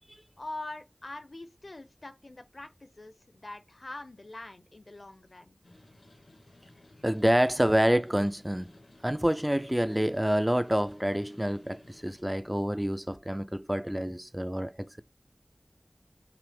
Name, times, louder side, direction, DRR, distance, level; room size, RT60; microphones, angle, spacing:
voice 1, 0.4-5.6, left 2 dB, 70° left, 0.8 m, -43 dB
sound 1, 5.6-12.2, left 1 dB, 85° left, 1.1 m, -57 dB
voice 2, 7.0-8.7 9.0-15.0, equal, 15° right, 0.4 m, -27 dB
5.8 x 2.0 x 3.4 m
wide cardioid pair, 40°, 0 cm